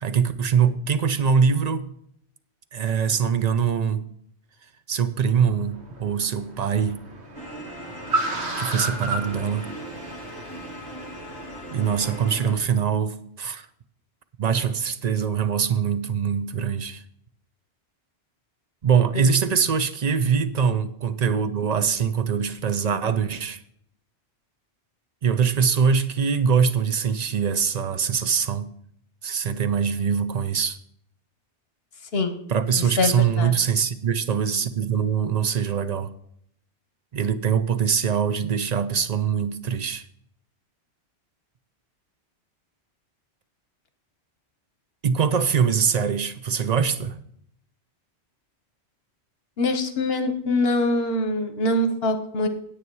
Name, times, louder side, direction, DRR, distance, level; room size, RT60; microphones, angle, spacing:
voice 1, 0.0-1.8 2.7-4.1 4.9-7.0 8.6-9.6 11.7-13.7 14.4-17.0 18.8-23.6 25.2-28.7 29.2-30.8 32.5-36.1 37.1-40.0 45.0-47.2, right 7 dB, 45° right, 0.7 m, -23 dB
Car, 5.3-12.7, right 2 dB, 80° right, 1.7 m, -34 dB
sound 1, 7.3-12.5, equal, 25° left, 2.2 m, -39 dB
voice 2, 32.1-32.4 33.0-33.5 49.6-52.5, left 2 dB, 65° left, 1.2 m, -23 dB
9.7 x 8.7 x 4.7 m
omnidirectional pair, 1.1 m